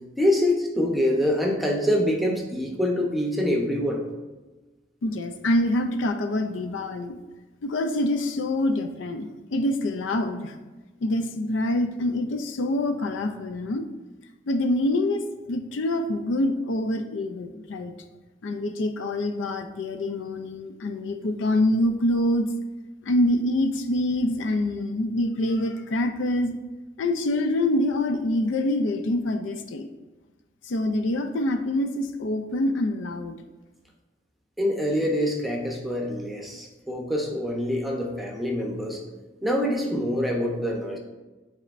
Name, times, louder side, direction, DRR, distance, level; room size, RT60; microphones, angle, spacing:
voice 1, 0.2-4.0 34.6-39.0 39.4-41.0, left 1 dB, ahead, 0 dB, 0.7 m, -25 dB
voice 2, 5.0-7.2 7.6-10.5 11.0-13.8 14.5-17.9 18.4-22.5 23.0-26.6 27.0-29.9 30.6-33.4, left 1 dB, 75° left, 8 dB, 0.4 m, -25 dB
9.7 x 4.1 x 2.5 m, 1.2 s
head